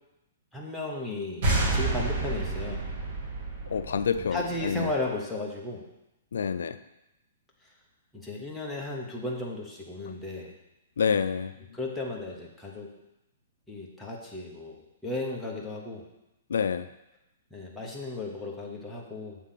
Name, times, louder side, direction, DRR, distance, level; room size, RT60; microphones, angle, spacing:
voice 1, 0.5-2.8 4.3-5.8 8.1-10.5 11.7-12.9 13.7-16.0 17.5-19.4, left 2 dB, 5° left, -4 dB, 0.9 m, -35 dB
sound 1, 1.4-4.9, right 2 dB, 45° right, 1.9 m, -29 dB
voice 2, 3.7-4.9 6.3-6.8 11.0-11.5 16.5-16.9, left 6 dB, 90° left, 12 dB, 0.3 m, -27 dB
7.3 x 3.6 x 5.7 m, 0.93 s
hypercardioid pair, 170°, 0 cm